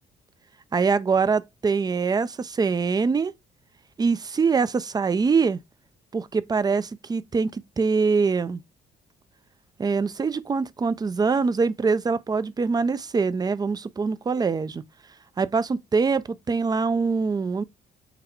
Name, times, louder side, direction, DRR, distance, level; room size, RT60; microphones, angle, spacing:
voice 1, 0.7-3.3 4.0-5.6 6.1-8.6 9.8-14.8 15.4-17.6, right 5 dB, 20° right, 0.4 m, -24 dB
3.9 x 2.1 x 4.4 m
cardioid pair, 90°, 20 cm